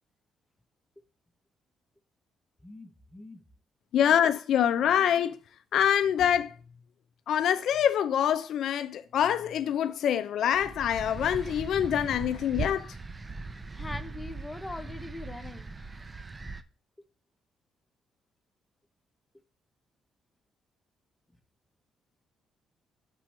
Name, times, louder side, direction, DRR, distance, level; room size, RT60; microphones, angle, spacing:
voice 1, 2.6-3.4 13.8-15.7, left 2 dB, 15° left, 0.6 m, -41 dB
voice 2, 3.9-5.4 5.7-6.5 7.3-12.9, left 9 dB, 70° left, 0.3 m, -25 dB
sound 1, 10.5-16.6, right 3 dB, 25° right, 0.4 m, -39 dB
6.1 x 2.9 x 5.5 m
cardioid pair, 90°, 0 cm